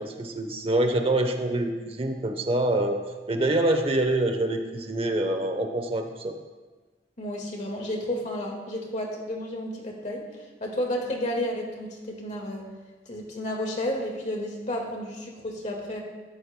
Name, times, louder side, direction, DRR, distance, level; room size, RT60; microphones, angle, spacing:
voice 1, 0.0-3.0 3.3-6.3, right 1 dB, 30° right, 6 dB, 0.9 m, -25 dB
voice 2, 7.2-12.7 13.1-16.0, left 1 dB, 40° left, 0 dB, 1.8 m, -32 dB
14.0 x 11.5 x 2.2 m, 1.3 s
head